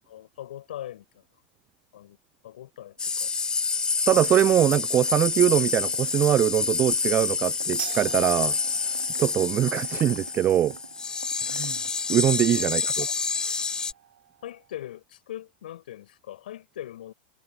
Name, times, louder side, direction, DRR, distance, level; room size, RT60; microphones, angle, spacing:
voice 1, 0.1-1.0 1.9-2.2 2.4-3.3 12.5-12.7 13.0-13.1 14.4-17.1, left 12 dB, 65° left, 4.9 m, -40 dB
sound 1, 3.0-13.9, left 4 dB, 15° left, 1.0 m, -28 dB
voice 2, 4.1-8.5 9.2-10.8 11.5-11.8 12.1-13.1, right 11 dB, 30° right, 0.4 m, -22 dB
sound 2, 4.1-4.5 4.7-12.0 12.2-12.4, right 5 dB, 85° right, 2.6 m, -47 dB
sound 3, 7.8-14.9, right 10 dB, 70° right, 5.9 m, -45 dB
figure-of-eight pair, 95°, 5 cm